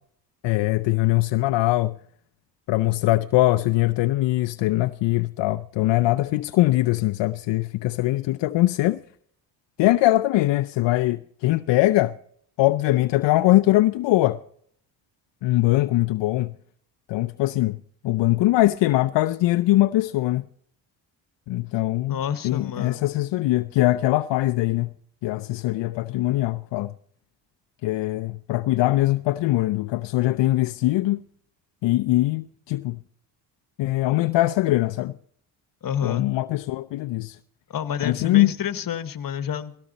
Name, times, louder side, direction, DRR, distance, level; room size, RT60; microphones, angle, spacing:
voice 1, 0.4-2.0 2.7-9.0 9.8-12.2 12.6-14.4 15.4-16.5 17.1-17.8 18.0-20.4 21.5-22.2 22.4-24.9 25.2-26.9 27.8-31.2 31.8-33.0 33.8-35.1 36.0-37.4 38.0-38.5, left 17 dB, 70° left, 0.7 m, -22 dB
voice 2, 22.1-23.0 35.8-36.3 37.7-39.7, left 8 dB, 45° left, 1.4 m, -29 dB
18.5 x 16.0 x 4.1 m
cardioid pair, 80°, 46 cm